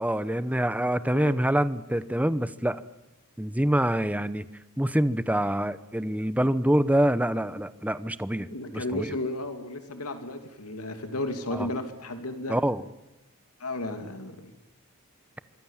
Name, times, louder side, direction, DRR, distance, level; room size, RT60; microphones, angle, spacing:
voice 1, 0.0-2.8 3.4-4.4 4.8-9.1 11.5-11.7 12.5-12.8, right 1 dB, 5° right, 14 dB, 0.9 m, -26 dB
voice 2, 8.5-12.6 13.6-14.5, left 2 dB, 90° left, 7 dB, 2.9 m, -33 dB
26.0 x 23.5 x 7.4 m, 0.96 s
head